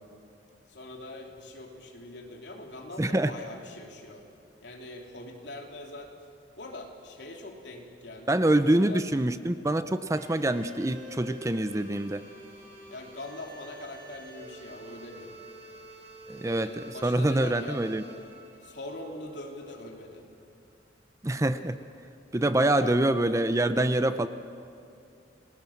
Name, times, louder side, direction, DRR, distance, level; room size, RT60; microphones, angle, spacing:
voice 1, 0.7-4.2 4.6-6.2 6.6-8.4 8.8-9.0 12.9-15.4 16.4-17.9 18.6-20.2 22.8-23.0, left 2 dB, 75° left, 1 dB, 3.3 m, -42 dB
voice 2, 3.0-3.3 8.3-12.3 16.3-18.0 21.2-21.8 22.3-24.3, right 1 dB, 15° right, 11 dB, 0.6 m, -25 dB
sound 1, 10.1-20.1, right 1 dB, 35° right, 5.2 m, -48 dB
29.5 x 19.0 x 7.2 m, 2.5 s
head